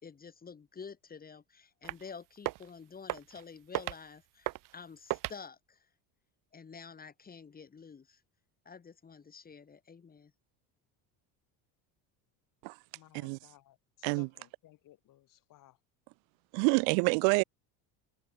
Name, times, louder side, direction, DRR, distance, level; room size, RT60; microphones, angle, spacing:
voice 1, 0.0-5.8 6.5-8.2 8.7-10.3, left 5 dB, 20° left, 4.1 m, -49 dB
sound 1, 1.8-2.1 2.4-2.7 3.1-3.4 3.7-4.0 4.5-4.7 5.1-5.4, right 18 dB, 50° right, 1.0 m, -36 dB
voice 2, 12.9-15.8, left 14 dB, 50° left, 7.1 m, -59 dB
voice 3, 16.5-17.4, right 40 dB or more, 85° right, 1.7 m, -27 dB
cardioid pair, 150°, 42 cm